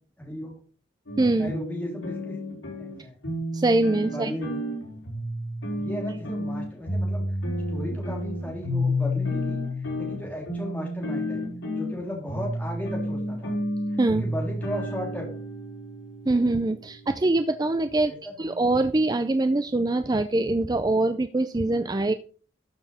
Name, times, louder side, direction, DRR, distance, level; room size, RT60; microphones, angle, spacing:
voice 1, 0.2-0.6 1.4-2.4 2.8-3.2 4.1-4.6 5.7-7.2 7.5-9.6 9.9-13.6 14.1-15.3 18.1-18.6, left 1 dB, 10° left, -2 dB, 3.4 m, -35 dB
sound 1, 1.1-17.3, left 1 dB, 85° left, 5.3 m, -31 dB
voice 2, 1.2-1.5 3.5-4.3 14.0-14.2 16.3-18.1 18.4-22.1, right 2 dB, 20° right, 10 dB, 0.4 m, -23 dB
13.0 x 6.9 x 4.2 m, 0.40 s
head